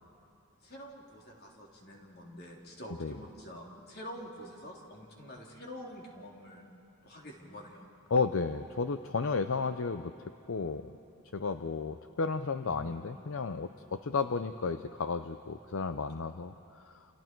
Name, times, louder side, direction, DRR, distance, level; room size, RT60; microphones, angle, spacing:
voice 1, 0.6-6.6 7.0-7.9 12.6-13.1, equal, 45° left, -1 dB, 3.4 m, -47 dB
voice 2, 8.1-10.1 10.5-10.9 11.3-17.1, left 4 dB, 65° left, 9 dB, 0.6 m, -33 dB
29.0 x 29.0 x 4.6 m, 2.7 s
head